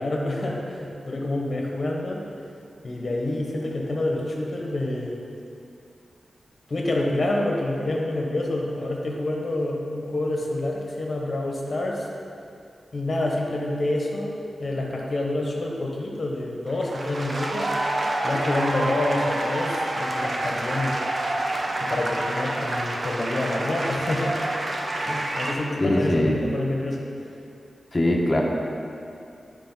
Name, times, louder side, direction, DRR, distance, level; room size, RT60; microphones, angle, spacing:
voice 1, 0.0-2.2 2.8-5.2 6.7-12.1 12.9-18.0 18.2-21.0 21.8-24.4 25.0-27.3, left 1 dB, 50° left, -1 dB, 1.2 m, -27 dB
sound 1, 16.7-25.5, right 1 dB, 50° right, 0.7 m, -28 dB
voice 2, 25.8-26.4 27.9-28.4, left 1 dB, 30° left, -2 dB, 1.1 m, -21 dB
9.6 x 5.0 x 4.0 m, 2.5 s
wide cardioid pair, 100°, 0 cm